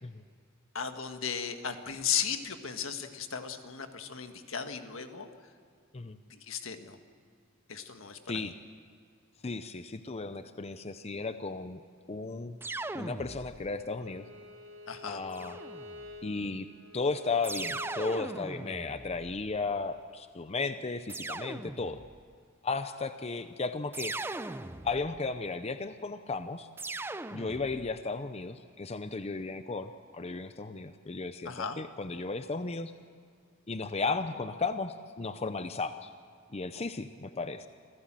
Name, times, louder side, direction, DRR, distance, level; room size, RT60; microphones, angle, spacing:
voice 1, 0.7-5.3 6.3-7.0 7.7-8.4 14.9-15.2 31.4-31.8, left 7 dB, 75° left, 7 dB, 1.6 m, -36 dB
voice 2, 9.4-11.8 12.1-12.6 12.9-14.3 15.1-15.6 16.2-16.7 16.9-22.0 22.6-24.2 24.8-26.7 27.3-32.9 33.7-36.1 36.5-37.7, left 3 dB, 30° left, 10 dB, 0.6 m, -35 dB
sound 1, 12.6-13.8 15.3-16.2 17.4-19.8 21.1-22.2 23.9-25.3 26.8-28.0, right 2 dB, 10° right, 0.5 m, -39 dB
Bowed string instrument, 14.0-19.0, left 2 dB, 90° right, 5.9 m, -49 dB
27.0 x 16.0 x 7.6 m, 2.3 s
head